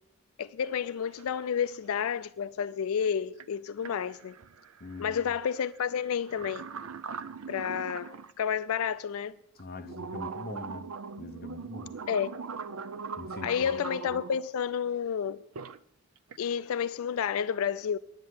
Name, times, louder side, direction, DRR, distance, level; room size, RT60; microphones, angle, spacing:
voice 1, 0.4-4.3 5.0-6.7 7.5-9.3 12.1-12.4 13.4-15.4 16.4-18.0, left 7 dB, 85° left, 0.4 m, -30 dB
sound 1, 0.6-0.7 1.0-1.8 3.4-3.5 3.8-8.3 8.9-9.0 9.6-14.4 15.3-15.8 16.2-16.5, right 5 dB, 85° right, 0.5 m, -41 dB
voice 2, 4.8-5.3 9.6-10.9 11.2-12.0 13.2-13.8, left 2 dB, 45° left, 0.8 m, -43 dB
10.5 x 7.5 x 9.5 m
head